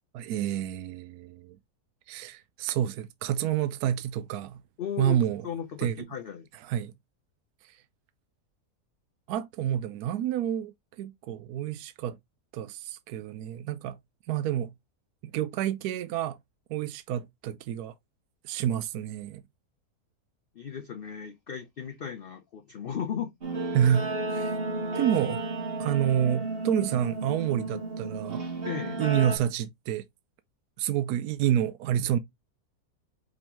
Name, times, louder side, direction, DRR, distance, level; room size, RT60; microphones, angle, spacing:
voice 1, 0.1-1.6 2.1-4.6 5.0-5.4 5.8-6.1 6.7-6.9 7.6-7.8 9.3-12.2 12.5-14.0 14.3-14.7 15.2-16.4 16.7-17.9 18.4-19.4 23.7-24.6 24.9-25.4 25.8-28.4 29.0-30.0 30.8-32.2, right 10 dB, 75° right, 1.0 m, -28 dB
voice 2, 4.8-5.2 5.4-6.5 20.6-23.3 23.8-23.9 28.6-29.0, left 8 dB, 70° left, 0.5 m, -36 dB
Guitar, 23.4-29.4, right 2 dB, 40° right, 1.3 m, -33 dB
5.1 x 3.5 x 2.9 m
omnidirectional pair, 1.7 m